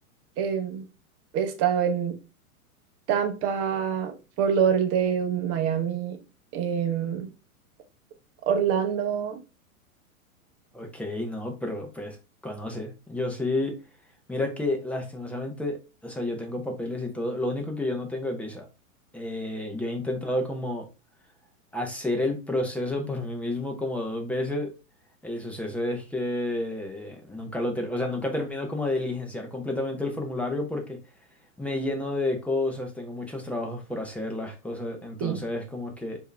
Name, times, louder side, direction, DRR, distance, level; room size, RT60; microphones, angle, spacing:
voice 1, 0.4-0.8 1.3-2.2 3.1-6.2 6.5-7.3 8.5-9.4 35.2-35.4, right 8 dB, 35° right, 0.9 m, -25 dB
voice 2, 10.7-12.2 12.4-13.7 14.3-15.8 16.0-18.7 19.1-20.8 21.7-24.7 25.2-31.0 31.6-36.2, left 2 dB, 5° left, 0.8 m, -30 dB
4.7 x 2.9 x 3.2 m
hypercardioid pair, 120°, 42 cm